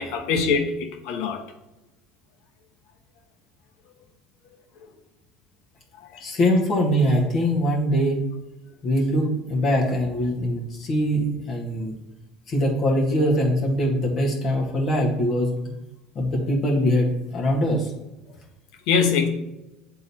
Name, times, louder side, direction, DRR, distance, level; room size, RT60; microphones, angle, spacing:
voice 1, 0.0-1.4 18.9-19.3, left 5 dB, 65° left, 4 dB, 1.1 m, -23 dB
voice 2, 6.2-8.2 8.8-11.9 12.5-15.5 16.2-17.9, equal, 45° left, -2 dB, 1.8 m, -22 dB
7.8 x 3.8 x 4.3 m, 1.0 s
hypercardioid pair, 75°, 0 cm